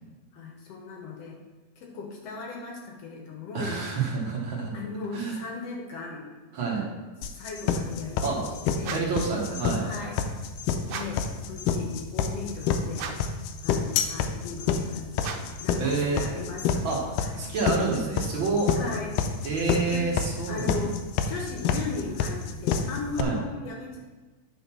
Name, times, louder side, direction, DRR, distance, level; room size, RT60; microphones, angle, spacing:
voice 1, 0.3-1.4 1.8-3.8 4.7-6.3 7.2-8.5 8.7-9.1 9.8-10.2 10.9-13.1 13.6-15.0 15.6-16.9 17.2-17.4 18.7-19.2 19.9-20.1 20.5-21.0 21.3-24.0, left 4 dB, 65° left, 1 dB, 1.7 m, -37 dB
voice 2, 3.5-4.7 5.1-5.4 6.5-6.9 8.2-8.4 8.9-9.9 15.8-16.2 16.8-18.7 19.4-20.9 23.2-23.4, right 4 dB, 50° right, -2 dB, 1.7 m, -28 dB
sound 1, 7.2-23.2, left 7 dB, 85° left, 2.3 m, -27 dB
sound 2, 8.8-9.3 10.8-11.3 12.9-13.4 15.2-15.7, right 6 dB, 90° right, 2.3 m, -37 dB
9.6 x 4.1 x 5.9 m, 1.3 s
omnidirectional pair, 3.8 m